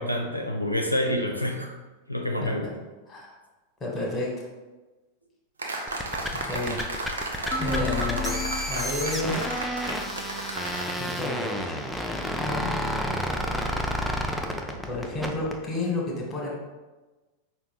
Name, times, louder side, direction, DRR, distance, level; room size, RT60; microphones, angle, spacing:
voice 1, 0.0-1.7 2.1-2.8, left 1 dB, 90° left, 2 dB, 0.4 m, -27 dB
voice 2, 3.8-4.4 6.3-6.8 7.6-8.3 8.7-9.4 11.0-12.2 12.4-12.9 14.8-16.5, left 2 dB, 20° left, -2 dB, 1.1 m, -31 dB
sound 1, 5.6-11.0, right 2 dB, 70° right, 0.6 m, -34 dB
sound 2, 5.9-15.6, equal, ahead, 0.5 m, -31 dB
sound 3, 7.5-10.6, left 3 dB, 15° right, 0.8 m, -33 dB
5.2 x 2.3 x 3.6 m, 1.2 s
figure-of-eight pair, 90°, 0 cm